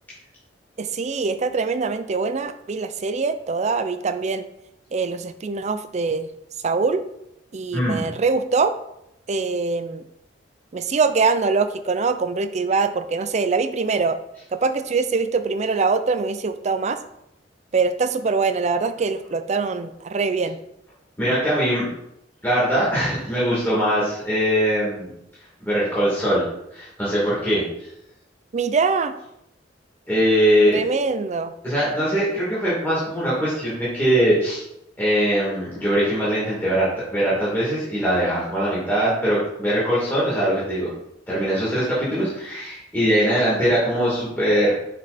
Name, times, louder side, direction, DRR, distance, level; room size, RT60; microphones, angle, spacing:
voice 1, 0.8-4.5 4.9-6.3 6.6-7.0 7.5-8.8 9.3-10.0 10.7-14.2 14.5-17.0 17.7-20.6 28.5-29.1 30.7-31.5, right 4 dB, 40° right, 10 dB, 0.5 m, -23 dB
voice 2, 7.7-8.0 21.2-21.8 22.4-25.1 25.6-26.4 26.7-27.9 30.1-30.8 31.6-34.6 35.0-40.9 41.3-44.7, equal, 10° left, -9 dB, 2.4 m, -21 dB
6.1 x 5.1 x 4.2 m, 0.80 s
head